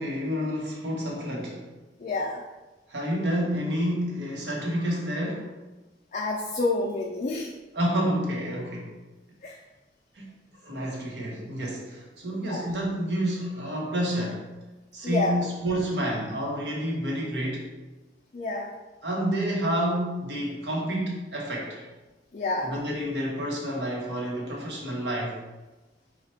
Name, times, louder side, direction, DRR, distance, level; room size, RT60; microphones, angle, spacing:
voice 1, 0.0-1.6 2.9-5.5 7.7-8.9 10.1-10.3 10.5-14.5 14.9-17.7 19.0-21.9 22.6-25.4, equal, 75° right, -2 dB, 1.1 m, -29 dB
voice 2, 2.0-2.4 6.1-7.5 9.4-9.6 12.5-12.7 15.0-15.4 18.3-18.7 22.3-22.7, left 2 dB, 45° left, -1 dB, 0.4 m, -28 dB
4.3 x 2.4 x 4.3 m, 1.1 s
head